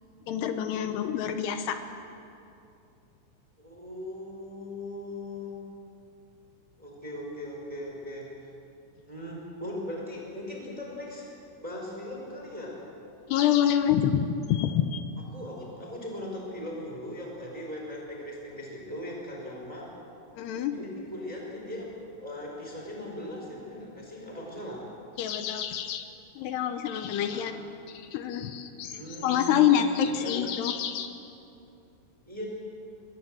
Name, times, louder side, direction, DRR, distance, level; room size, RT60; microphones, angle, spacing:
voice 1, 0.3-1.8 13.3-15.0 20.4-20.8 25.2-26.1 26.4-27.5 27.9-31.1, left 9 dB, 75° left, 7 dB, 2.6 m, -27 dB
voice 2, 3.6-5.6 6.8-8.5 9.1-11.3 11.6-12.8 15.3-19.9 20.7-21.9 22.2-24.8 27.3-27.5 28.9-29.6 30.0-30.4 32.2-32.4, left 1 dB, 10° right, -1 dB, 4.2 m, -39 dB
22.5 x 21.5 x 7.8 m, 2.6 s
omnidirectional pair, 5.7 m